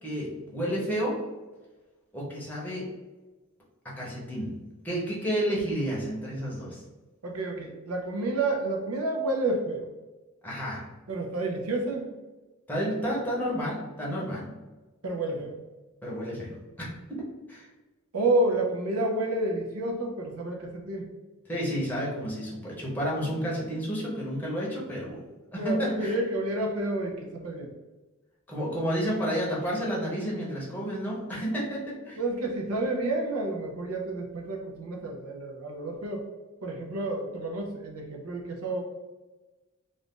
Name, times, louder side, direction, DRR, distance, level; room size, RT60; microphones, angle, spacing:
voice 1, 0.0-1.2 2.1-2.9 4.0-4.5 4.8-6.8 10.4-10.8 12.7-14.5 16.0-17.7 21.5-25.2 25.5-26.2 28.5-32.2, equal, 10° left, -5 dB, 0.8 m, -31 dB
voice 2, 7.2-9.9 11.1-12.1 15.0-15.6 18.1-21.1 25.5-27.7 32.2-36.3 36.6-38.8, right 2 dB, 85° right, 2 dB, 0.6 m, -30 dB
2.5 x 2.4 x 3.6 m, 1.2 s
head